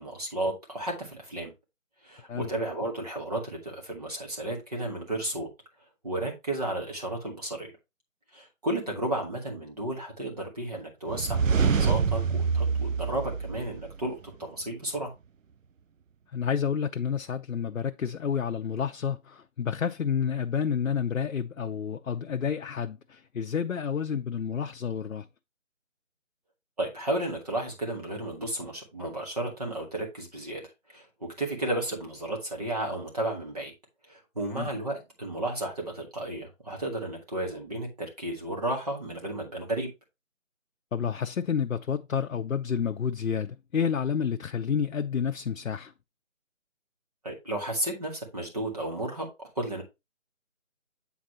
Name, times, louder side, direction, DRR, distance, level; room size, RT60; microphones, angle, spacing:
voice 1, 0.0-1.5 2.0-5.5 6.0-7.7 8.3-15.1 26.8-30.6 30.9-33.7 34.1-39.9 47.2-49.3 49.6-49.8, right 1 dB, 30° right, 1.9 m, -33 dB
sound 1, 11.1-14.1, right 5 dB, 70° right, 0.7 m, -26 dB
voice 2, 16.3-25.3 34.5-34.7 40.9-45.9, left 7 dB, 75° left, 0.7 m, -29 dB
8.3 x 4.0 x 4.2 m
figure-of-eight pair, 170°, 40 cm